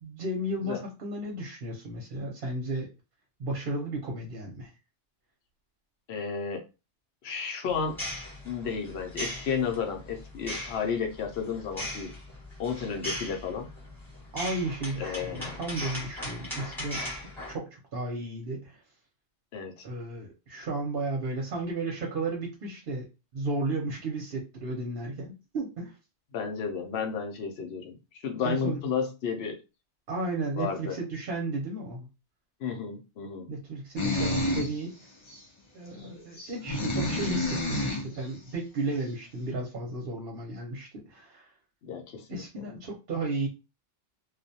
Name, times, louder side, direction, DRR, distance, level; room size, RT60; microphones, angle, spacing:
voice 1, 0.0-2.9 3.4-4.7 14.3-18.8 19.8-23.1 23.3-25.9 28.4-28.8 30.1-32.1 33.5-34.9 35.7-41.5 42.3-43.5, right 2 dB, 55° right, -1 dB, 0.8 m, -34 dB
voice 2, 6.1-6.7 7.2-8.0 8.4-12.1 12.6-13.7 15.0-15.6 19.5-19.8 26.3-28.0 28.2-29.6 30.6-30.9 32.6-33.5 41.8-42.4, left 6 dB, 65° left, 3 dB, 0.9 m, -32 dB
sound 1, 7.7-17.5, left 1 dB, ahead, 1.1 m, -39 dB
sound 2, 34.0-34.8 35.3-35.4 36.3-38.1, left 1 dB, 35° left, 0.5 m, -29 dB
2.4 x 2.2 x 2.7 m, 0.28 s
omnidirectional pair, 1.2 m